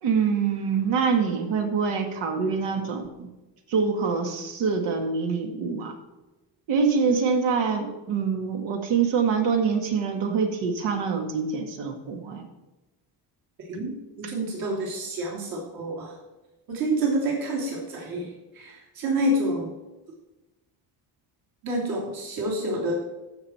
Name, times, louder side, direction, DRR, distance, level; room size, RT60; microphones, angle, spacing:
voice 1, 0.0-3.3 3.7-5.9 6.7-12.5, right 5 dB, 85° right, 4 dB, 2.1 m, -25 dB
voice 2, 13.7-16.1 16.7-19.7 21.6-22.9, right 1 dB, 55° right, -3 dB, 3.3 m, -28 dB
15.0 x 6.4 x 4.5 m, 1.1 s
cardioid pair, 165°, 41 cm